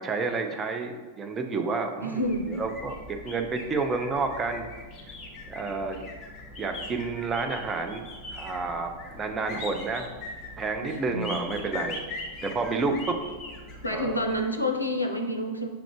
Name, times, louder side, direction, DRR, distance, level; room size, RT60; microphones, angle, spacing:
voice 1, 0.0-4.7 5.1-5.2 5.5-6.1 6.6-10.1 10.6-12.0 12.4-13.2 13.9-14.3, right 4 dB, 20° right, 5 dB, 0.4 m, -30 dB
voice 2, 2.0-2.5 10.8-11.3 13.8-15.7, equal, 85° left, 3 dB, 0.4 m, -28 dB
sound 1, 2.2-14.4, left 2 dB, 35° left, 0.7 m, -41 dB
5.7 x 2.5 x 3.3 m, 1.3 s
figure-of-eight pair, 90°, 0 cm